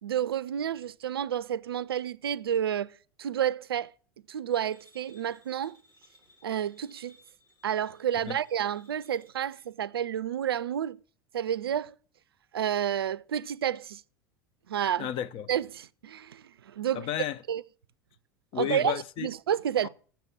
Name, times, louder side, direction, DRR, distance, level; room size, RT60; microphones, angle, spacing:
voice 1, 0.0-3.9 4.3-5.8 6.4-7.2 7.6-11.0 11.3-12.0 12.5-14.0 14.7-15.1 15.5-17.1 17.5-17.6 18.5-19.9, right 9 dB, 80° right, 0.4 m, -30 dB
sound 1, 4.5-9.7, left 1 dB, 25° left, 3.8 m, -62 dB
voice 2, 15.0-15.5 16.9-17.4 18.5-19.3 19.8-19.9, left 11 dB, 45° left, 0.7 m, -32 dB
7.2 x 7.1 x 7.6 m
hypercardioid pair, 80°, 12 cm